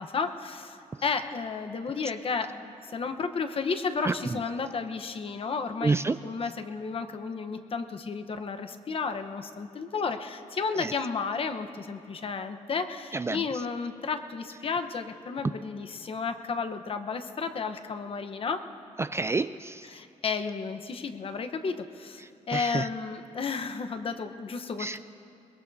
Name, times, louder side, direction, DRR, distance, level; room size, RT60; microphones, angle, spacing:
voice 1, 0.0-5.9 6.2-18.6 19.9-25.0, left 5 dB, 50° left, 8 dB, 1.0 m, -32 dB
voice 2, 4.0-4.4 5.8-6.2 10.8-10.9 13.1-13.4 19.0-19.9 22.5-22.9 24.8-25.0, right 3 dB, 20° right, 13 dB, 0.3 m, -29 dB
22.5 x 21.0 x 2.7 m, 2.8 s
cardioid pair, 110°, 12 cm